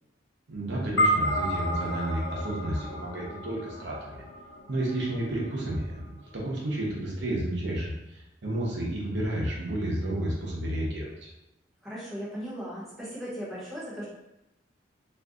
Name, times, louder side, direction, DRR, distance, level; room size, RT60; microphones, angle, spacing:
voice 1, 0.5-4.2 4.7-6.0 6.3-11.3, right 1 dB, 65° right, -4 dB, 0.8 m, -31 dB
sound 1, 1.0-5.5, equal, 70° left, 0.6 m, -30 dB
voice 2, 11.8-14.1, equal, ahead, -9 dB, 1.0 m, -37 dB
2.5 x 2.3 x 3.7 m, 0.91 s
head